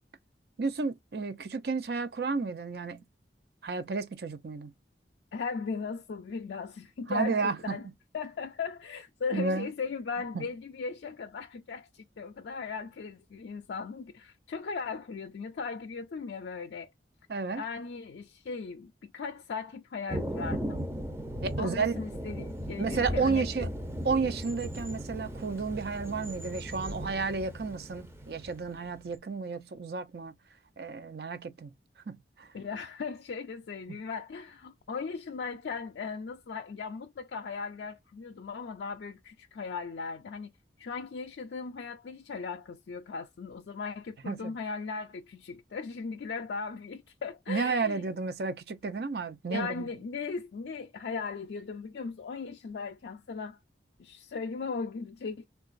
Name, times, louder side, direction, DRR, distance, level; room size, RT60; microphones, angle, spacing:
voice 1, 0.6-3.0 3.6-4.7 7.1-7.8 9.3-9.7 10.3-10.5 17.3-17.6 21.4-21.9 22.8-23.7 24.0-30.3 30.8-31.7 32.1-32.5 44.3-44.6 47.5-49.9, right 4 dB, 60° right, 0.5 m, -32 dB
voice 2, 5.3-7.9 8.1-16.9 17.5-20.8 21.6-23.7 32.5-40.5 40.8-48.0 49.5-53.6 54.0-55.4, left 5 dB, 75° left, 0.4 m, -38 dB
Thunder, 20.1-29.1, equal, 15° right, 0.5 m, -37 dB
3.8 x 2.3 x 2.4 m
head